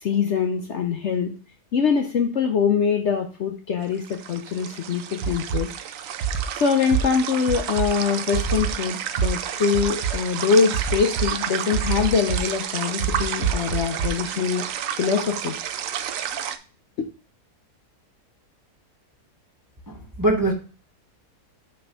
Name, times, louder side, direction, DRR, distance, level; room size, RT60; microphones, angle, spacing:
voice 1, 0.0-1.3 1.7-5.7 6.5-14.6 15.0-15.6 17.0-17.1, left 6 dB, 60° left, 0.8 m, -23 dB
sound 1, 3.8-16.6, right 9 dB, 70° right, 0.9 m, -31 dB
sound 2, 5.2-5.6 6.2-6.4 6.9-7.0 7.5-7.9 8.3-8.7 9.2-9.3 9.7-10.1 10.7-11.3 11.7-12.4 13.0-14.1, right 9 dB, 85° right, 1.3 m, -24 dB
voice 2, 19.9-20.5, right 1 dB, 20° right, 0.6 m, -22 dB
6.4 x 3.4 x 5.4 m
omnidirectional pair, 1.7 m